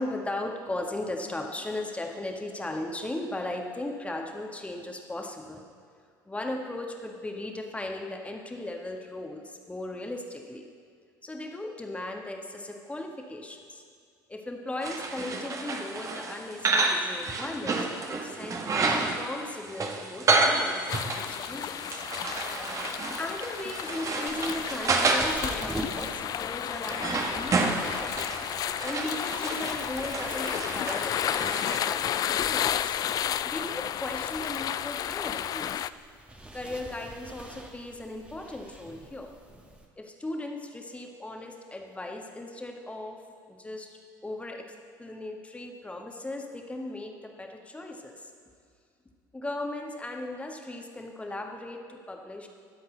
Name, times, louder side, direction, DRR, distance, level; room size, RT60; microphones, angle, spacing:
voice 1, 0.0-5.6 6.3-10.6 11.2-13.8 14.3-22.0 23.2-28.2 28.8-33.0 33.4-35.9 36.5-39.3 40.0-43.2 43.5-48.3 49.3-52.5, left 1 dB, 10° left, 2 dB, 1.7 m, -37 dB
sound 1, 14.8-31.8, right 3 dB, 30° right, 1.5 m, -30 dB
sound 2, 20.9-35.9, left 10 dB, 35° left, 0.3 m, -32 dB
sound 3, 24.3-39.9, right 1 dB, 10° right, 1.6 m, -46 dB
22.5 x 7.9 x 4.0 m, 2.2 s
figure-of-eight pair, 65°, 11 cm